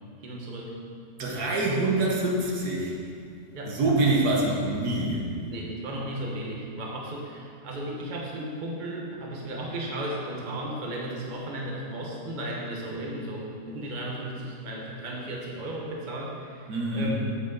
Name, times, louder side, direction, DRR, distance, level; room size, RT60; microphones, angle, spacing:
voice 1, 0.2-0.7 3.5-3.8 5.5-17.2, right 1 dB, 30° right, -2 dB, 1.2 m, -35 dB
voice 2, 1.2-3.0 3.7-5.3 16.7-17.2, right 2 dB, 75° right, -2 dB, 1.8 m, -25 dB
8.3 x 8.2 x 4.0 m, 2.4 s
omnidirectional pair, 1.7 m